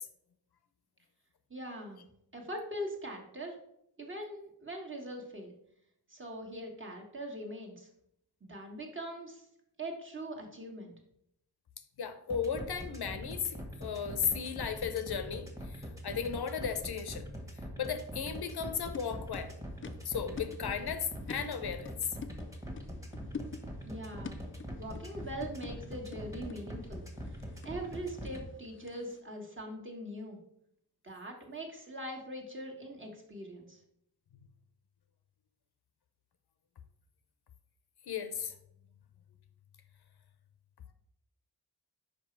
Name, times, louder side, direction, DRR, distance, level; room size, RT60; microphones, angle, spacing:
voice 1, 1.5-2.0 2.3-3.6 4.0-5.5 6.1-7.9 8.4-9.5 9.8-10.9 23.8-24.4 24.8-27.0 27.6-30.4 31.0-33.8, right 1 dB, 30° right, 0 dB, 1.5 m, -42 dB
voice 2, 12.0-15.5 15.7-17.3 17.8-19.5 20.0-21.9 38.1-38.5, left 7 dB, 70° left, 9 dB, 0.7 m, -35 dB
sound 1, 12.3-28.4, equal, 10° right, 1.4 m, -42 dB
sound 2, 18.7-29.2, left 5 dB, 30° left, 0.5 m, -48 dB
5.2 x 5.0 x 4.6 m, 0.74 s
wide cardioid pair, 80°, 40 cm